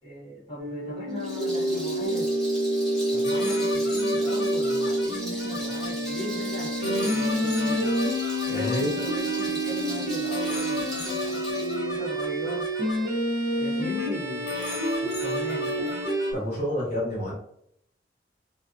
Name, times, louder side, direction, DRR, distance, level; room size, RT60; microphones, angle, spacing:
voice 1, 0.0-2.3 3.1-7.9 8.4-12.7 13.6-16.0, equal, 25° left, -11 dB, 1.2 m, -38 dB
sound 1, 0.6-16.3, right 1 dB, 60° right, 1.0 m, -28 dB
Rattle, 1.1-11.7, equal, ahead, 0.9 m, -40 dB
sound 2, 3.2-5.9 6.8-9.5 10.3-13.0 14.0-14.1 14.5-16.4, left 4 dB, 75° left, 0.7 m, -36 dB
voice 2, 8.5-8.9 16.3-17.3, equal, 40° left, -6 dB, 1.3 m, -28 dB
2.5 x 2.3 x 2.6 m, 0.70 s
head